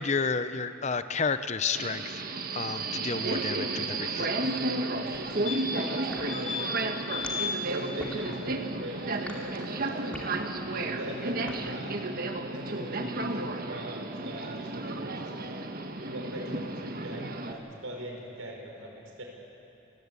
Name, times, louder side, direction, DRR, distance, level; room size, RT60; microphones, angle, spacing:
voice 1, 0.0-2.2 2.5-4.3, left 5 dB, 35° left, 11 dB, 0.7 m, -31 dB
Subway metro underground, 1.7-17.5, right 2 dB, 45° right, 1.3 m, -33 dB
voice 2, 4.2-7.3 7.7-10.1 10.7-12.0 12.4-15.6 16.0-19.2, right 1 dB, 80° right, 0 dB, 5.5 m, -41 dB
sound 1, 5.1-5.2 5.4-5.9 6.3-6.7 7.1-7.5 9.9-10.0 10.2-10.3, left 6 dB, 65° left, 3.4 m, -34 dB
sound 2, 6.1-11.7, left 1 dB, 5° left, 2.5 m, -43 dB
29.0 x 16.5 x 8.3 m, 3.0 s
head